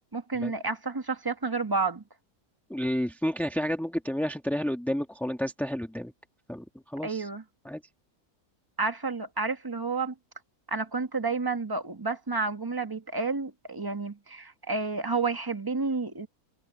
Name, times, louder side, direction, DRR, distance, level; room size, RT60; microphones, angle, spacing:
voice 1, 0.1-2.0 7.0-7.4 8.8-10.1 10.7-16.3, right 4 dB, 15° right, 1.2 m, -30 dB
voice 2, 2.7-6.1 6.5-7.3 7.6-7.8, equal, ahead, 1.6 m, -31 dB
omnidirectional pair, 1.6 m